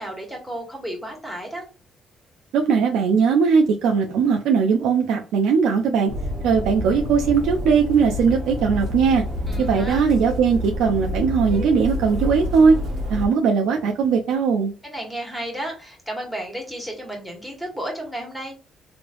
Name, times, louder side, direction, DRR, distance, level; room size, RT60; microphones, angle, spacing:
voice 1, 0.0-1.7 9.5-10.0 14.8-18.5, right 1 dB, ahead, 0 dB, 1.5 m, -33 dB
voice 2, 2.5-6.1 6.4-9.2 9.6-12.8 13.1-14.7, right 5 dB, 90° right, 3 dB, 0.4 m, -19 dB
sound 1, 6.1-13.3, left 1 dB, 60° right, 1.2 m, -28 dB
3.1 x 3.0 x 2.6 m, 0.34 s
cardioid pair, 90°, 0 cm